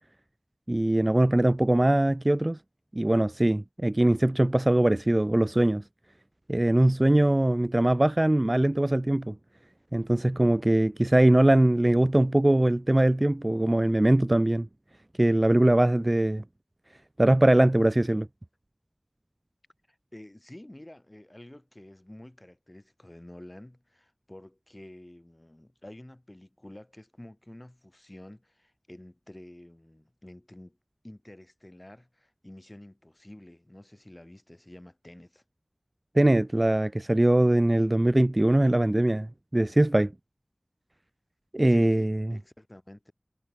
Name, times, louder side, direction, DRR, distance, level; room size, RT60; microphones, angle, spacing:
voice 1, 0.7-2.6 2.9-5.8 6.5-9.4 9.9-14.7 15.2-16.4 17.2-18.3 36.2-39.3 39.5-40.1 41.5-42.4, right 1 dB, 35° right, 0.3 m, -22 dB
voice 2, 19.9-30.8 31.0-35.4 41.7-43.1, left 1 dB, 25° left, 3.1 m, -49 dB
wide cardioid pair, 50°, 0 cm